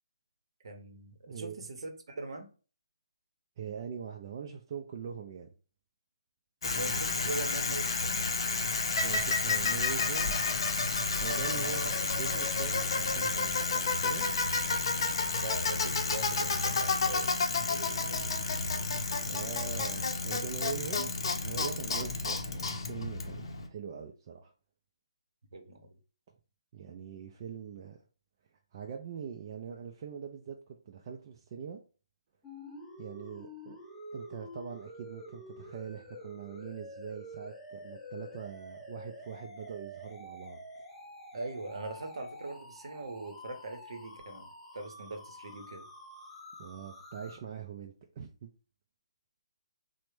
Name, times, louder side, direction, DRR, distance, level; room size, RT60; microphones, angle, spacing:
voice 1, 0.6-2.5 6.6-8.2 11.5-11.7 15.4-17.3 17.7-18.3 21.9-22.1 25.5-26.0 41.3-44.5 44.7-45.9, right 2 dB, 65° right, 0.8 m, -41 dB
voice 2, 1.3-1.6 3.6-5.5 6.9-7.0 9.0-10.4 11.2-14.3 19.3-21.1 21.4-23.4 23.7-24.5 26.7-28.0 28.7-31.8 33.0-33.8 34.1-40.6 46.6-48.5, right 7 dB, 40° right, 0.4 m, -42 dB
Bicycle, 6.6-23.7, left 4 dB, 55° left, 0.6 m, -31 dB
sound 1, 32.4-47.4, left 1 dB, 5° left, 0.6 m, -48 dB
3.2 x 2.1 x 3.1 m
figure-of-eight pair, 145°, 3 cm